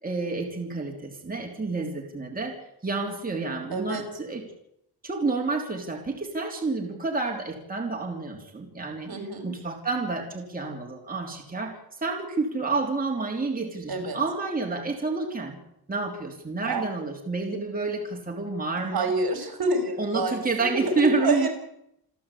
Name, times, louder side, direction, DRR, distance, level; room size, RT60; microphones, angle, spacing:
voice 1, 0.0-2.6 2.8-4.4 5.0-9.1 9.4-15.6 15.9-19.1 20.0-21.5, right 3 dB, 20° right, 1 dB, 3.3 m, -29 dB
voice 2, 3.7-4.0 9.1-9.5 13.9-14.2 16.6-16.9 18.8-21.5, right 2 dB, 65° right, 7 dB, 5.2 m, -28 dB
28.5 x 12.0 x 8.5 m, 0.77 s
wide cardioid pair, 175°, 38 cm